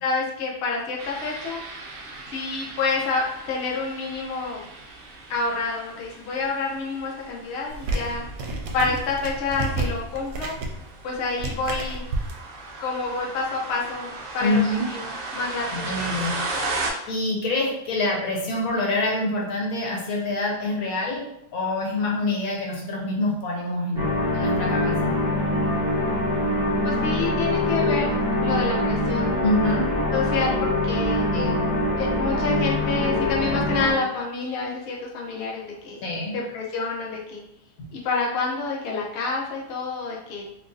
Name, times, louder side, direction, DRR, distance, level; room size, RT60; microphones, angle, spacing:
voice 1, 0.0-1.6 2.3-4.7 5.3-8.2 8.7-10.6 11.0-12.0 12.8-14.1 14.3-14.6 14.9-15.9 26.8-28.1 28.4-29.5 30.1-31.3 32.0-36.0 36.3-37.4 37.9-40.4, left 4 dB, 55° left, -3 dB, 0.9 m, -28 dB
sound 1, 1.0-16.9, right 3 dB, 55° right, 0.7 m, -36 dB
sound 2, 7.7-12.3, right 2 dB, 75° right, 1.0 m, -30 dB
voice 2, 14.4-14.8 15.7-16.3 17.1-21.2 21.5-25.1 29.4-29.9 31.3-31.6 36.0-36.4, left 2 dB, 80° left, -1 dB, 1.3 m, -26 dB
sound 3, 23.9-33.9, left 1 dB, 20° right, 1.2 m, -24 dB
2.9 x 2.6 x 3.8 m, 0.79 s
omnidirectional pair, 1.5 m